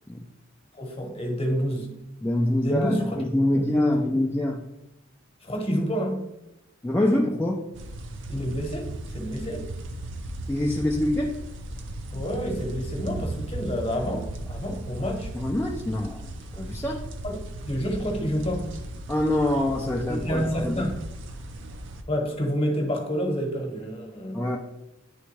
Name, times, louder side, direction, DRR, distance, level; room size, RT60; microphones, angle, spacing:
voice 1, 0.8-2.0 2.6-3.2 3.5-4.2 5.4-6.3 8.3-9.7 12.1-15.3 17.2-18.8 19.5-19.6 20.1-21.0 22.1-24.4, equal, 30° left, 1 dB, 1.1 m, -29 dB
voice 2, 2.2-4.6 6.8-7.7 10.5-11.4 15.3-16.3 16.6-17.0 19.1-20.8 24.3-24.6, left 1 dB, 10° left, -1 dB, 0.4 m, -25 dB
sound 1, 7.7-22.0, right 1 dB, 65° right, 0.6 m, -37 dB
9.8 x 3.4 x 3.2 m, 0.90 s
head